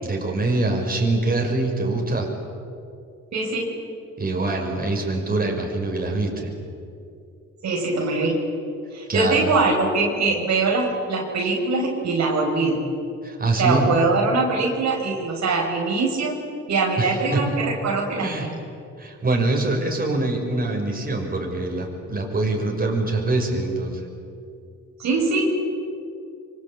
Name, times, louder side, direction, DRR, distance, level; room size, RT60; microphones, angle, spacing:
voice 1, 0.0-2.3 4.2-6.5 9.1-9.5 13.2-13.9 17.0-17.4 18.2-18.5 19.0-24.0, right 2 dB, 30° right, 1 dB, 6.0 m, -24 dB
voice 2, 3.3-3.7 7.6-8.4 8.9-12.8 13.6-16.3 16.7-18.5 25.0-25.5, right 3 dB, 65° right, 0 dB, 5.4 m, -22 dB
25.5 x 24.5 x 8.8 m, 2.5 s
cardioid pair, 90°, 30 cm